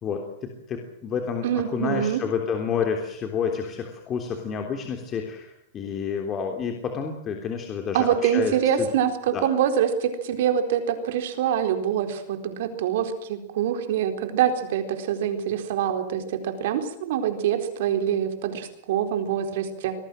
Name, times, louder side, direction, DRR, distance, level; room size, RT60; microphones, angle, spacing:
voice 1, 0.0-8.9 9.3-9.4, left 6 dB, 25° left, 3 dB, 3.4 m, -29 dB
voice 2, 1.4-2.2 7.9-20.0, right 9 dB, 70° right, 7 dB, 4.2 m, -25 dB
26.5 x 19.0 x 7.7 m, 0.71 s
supercardioid pair, 140°, 0 cm